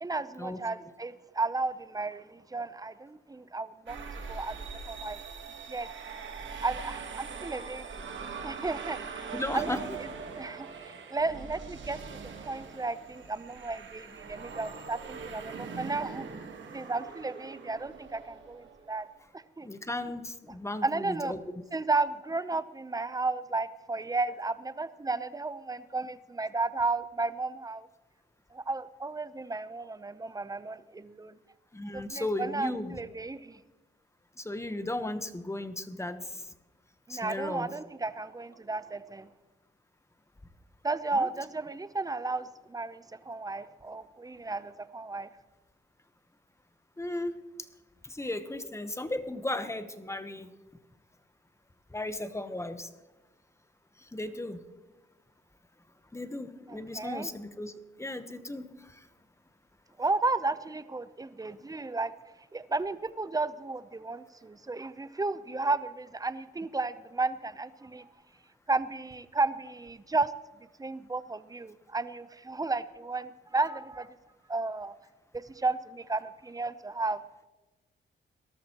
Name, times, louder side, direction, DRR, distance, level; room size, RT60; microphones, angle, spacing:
voice 1, 0.0-4.0 4.3-5.2 5.7-5.9 6.6-8.0 8.4-10.1 10.4-16.3 16.7-19.1 19.3-19.7 20.8-21.3 21.7-27.9 28.5-31.4 31.9-33.6 37.1-39.3 40.8-45.3 56.7-57.3 60.0-62.1 62.5-68.1 68.7-70.3 70.8-74.2 74.5-74.9 75.3-77.2, right 3 dB, 20° right, 14 dB, 0.7 m, -33 dB
sound 1, 3.9-19.1, right 5 dB, 70° right, 1.5 m, -42 dB
voice 2, 9.3-9.8 19.6-21.4 31.7-33.0 34.4-36.2 37.1-37.7 41.1-41.3 47.0-47.3 48.0-50.5 51.9-52.9 54.1-54.6 56.1-57.7 58.0-58.9, left 1 dB, 15° left, 10 dB, 1.0 m, -35 dB
19.5 x 13.0 x 3.0 m, 1.1 s
cardioid pair, 70°, 20 cm